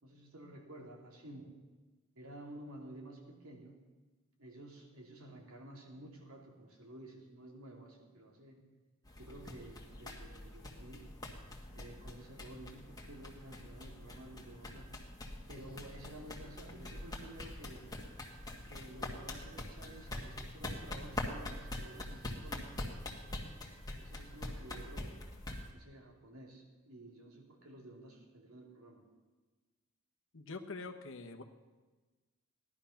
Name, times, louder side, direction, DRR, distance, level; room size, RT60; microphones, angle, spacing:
voice 1, 0.0-1.5 2.1-3.8 4.4-8.6 9.2-11.1 11.7-14.9 15.2-17.9 18.7-22.8 23.9-25.1 25.7-29.0, right 1 dB, 85° right, 1 dB, 2.9 m, -52 dB
sound 1, 9.1-25.7, left 1 dB, 20° left, 1.7 m, -44 dB
voice 2, 30.3-31.4, left 3 dB, 65° left, 4 dB, 1.1 m, -46 dB
16.5 x 12.0 x 5.8 m, 1.3 s
head